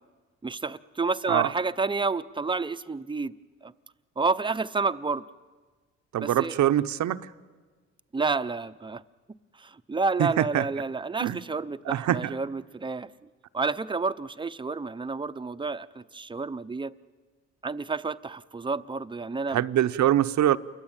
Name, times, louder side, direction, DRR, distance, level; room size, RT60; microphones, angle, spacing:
voice 1, 0.4-3.3 3.6-3.7 4.2-5.2 6.2-6.6 8.1-9.0 9.6-13.1 13.5-16.9 17.6-19.6, right 4 dB, 15° right, 0.8 m, -30 dB
voice 2, 6.1-7.3 10.2-10.6 11.2-11.4 11.9-12.3 19.5-20.6, right 12 dB, 70° right, 0.9 m, -24 dB
29.0 x 22.5 x 9.0 m
cardioid pair, 90°, 30 cm